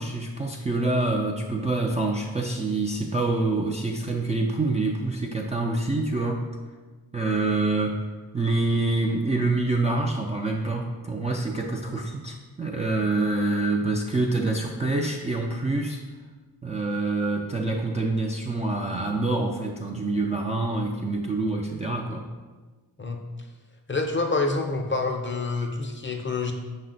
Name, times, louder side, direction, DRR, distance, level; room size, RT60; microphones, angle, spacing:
voice 1, 0.0-6.5 7.1-8.0 8.3-16.0 16.6-22.2, right 2 dB, 15° right, -2 dB, 0.4 m, -26 dB
voice 2, 23.9-26.5, left 3 dB, 25° left, 3 dB, 0.6 m, -27 dB
5.4 x 2.2 x 3.8 m, 1.3 s
supercardioid pair, 40°, 45 cm